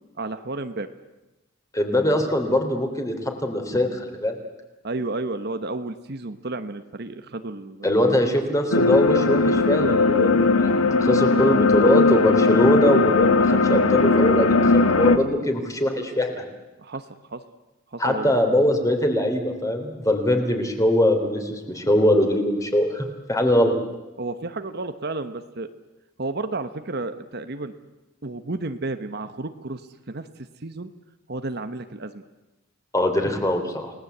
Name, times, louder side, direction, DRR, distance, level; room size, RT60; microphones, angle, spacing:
voice 1, 0.2-0.9 4.8-8.4 11.1-11.6 16.8-17.0 17.3-17.4 17.9-18.4 24.2-25.7 26.2-27.7 28.2-30.3 30.6-30.9 31.3-32.2, right 2 dB, 50° right, 9 dB, 1.1 m, -32 dB
voice 2, 1.7-4.4 7.8-10.7 11.0-16.5 18.0-23.7 32.9-33.9, left 1 dB, 15° left, 5 dB, 3.2 m, -22 dB
sound 1, 8.7-15.2, left 3 dB, 80° left, 1.4 m, -18 dB
29.5 x 18.5 x 8.0 m, 1.1 s
head